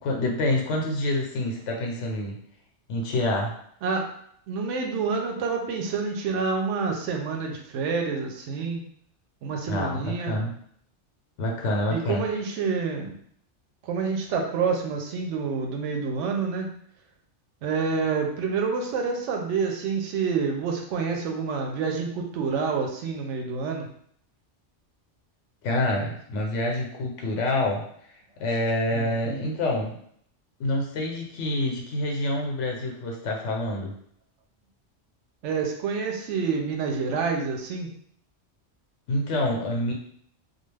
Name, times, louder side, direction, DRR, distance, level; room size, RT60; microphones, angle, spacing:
voice 1, 0.0-2.4 2.9-3.6 9.7-10.5 11.4-12.2 25.6-27.8 28.4-30.0 30.6-34.0 39.1-39.9, left 1 dB, 90° left, 1 dB, 1.0 m, -27 dB
voice 2, 4.5-8.8 9.4-10.4 11.9-13.2 13.8-16.7 17.6-23.9 28.9-29.4 35.4-37.9, right 5 dB, 80° right, 2 dB, 0.9 m, -28 dB
2.4 x 2.3 x 3.2 m, 0.65 s
omnidirectional pair, 1.2 m